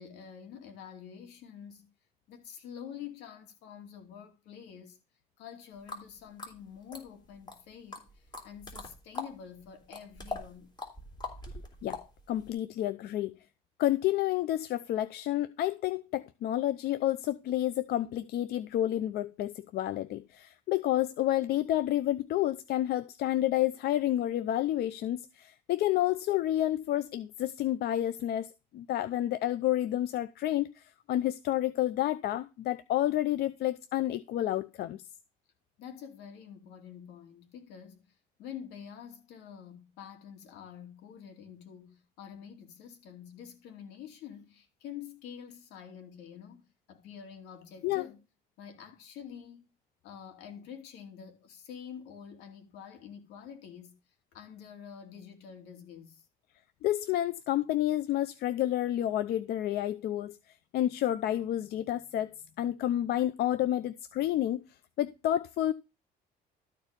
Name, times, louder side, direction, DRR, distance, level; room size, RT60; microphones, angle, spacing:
voice 1, 0.0-1.9 2.3-5.0 5.4-10.7 35.8-38.1 38.4-48.2 48.6-49.7 50.0-54.0 54.3-56.2, left 8 dB, 90° left, 2.8 m, -47 dB
sound 1, 5.9-6.0 6.4-7.6 7.9-9.3 9.7-12.5, left 3 dB, 25° left, 3.4 m, -41 dB
voice 2, 12.3-13.4 13.8-35.0 47.8-48.1 56.8-62.3 62.6-64.6 65.0-65.7, left 13 dB, 70° left, 0.6 m, -30 dB
13.0 x 4.6 x 5.1 m
cardioid pair, 110°, 17 cm